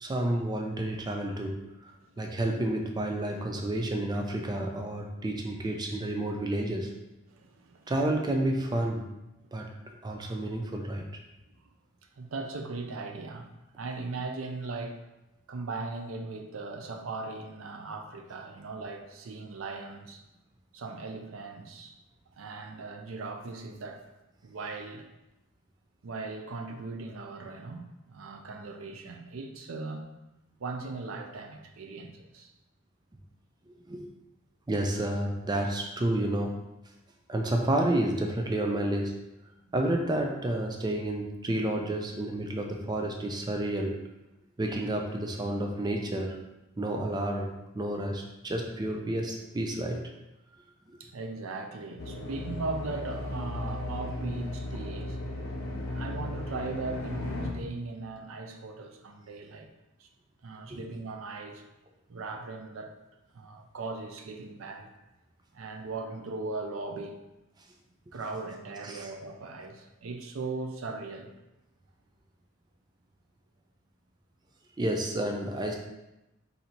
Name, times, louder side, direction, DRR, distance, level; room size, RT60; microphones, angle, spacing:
voice 1, 0.0-1.9 2.2-6.9 7.9-9.1 9.5-11.0 33.9-34.1 34.7-36.6 37.3-39.2 39.7-44.0 44.6-46.4 46.8-50.0 50.9-51.0 60.7-60.8 68.8-69.1 74.8-75.8, right 1 dB, 20° right, 2 dB, 0.4 m, -30 dB
voice 2, 7.3-7.9 12.2-13.5 13.8-15.0 15.5-20.2 20.7-22.0 22.4-24.0 24.4-25.1 26.0-30.1 30.6-32.5 51.0-55.2 55.9-59.7 60.0-60.1 60.4-61.6 62.1-62.9 63.3-64.9 65.5-67.2 68.1-71.3, right 3 dB, 75° right, 4 dB, 0.5 m, -38 dB
sound 1, 52.0-57.5, left 1 dB, 80° left, 0.7 m, -35 dB
4.0 x 2.7 x 4.3 m, 0.96 s
head